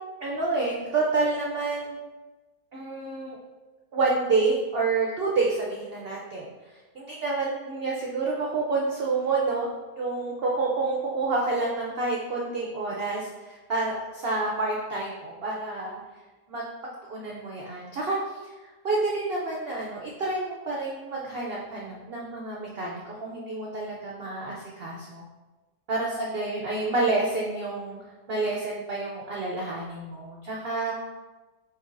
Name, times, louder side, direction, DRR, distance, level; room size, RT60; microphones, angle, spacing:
voice 1, 0.2-2.0 2.7-3.4 3.9-6.5 6.9-9.7 10.0-16.0 16.5-16.6 17.0-18.5 18.8-25.2 25.9-28.0 28.3-30.9, right 3 dB, 75° right, -3 dB, 0.5 m, -28 dB
7.6 x 2.8 x 2.5 m, 1.2 s
omnidirectional pair, 1.8 m